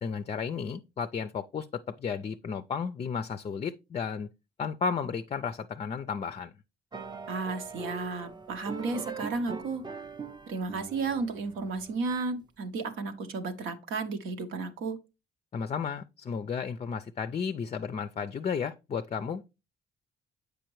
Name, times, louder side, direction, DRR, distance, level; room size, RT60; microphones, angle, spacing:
voice 1, 0.0-4.3 4.6-6.5 15.5-19.6, left 6 dB, 35° left, 0.4 m, -33 dB
sound 1, 6.9-12.2, right 4 dB, 20° right, 0.5 m, -41 dB
voice 2, 7.3-9.8 10.5-15.0, right 4 dB, 85° right, 0.9 m, -33 dB
7.6 x 5.0 x 3.0 m
cardioid pair, 90°, 20 cm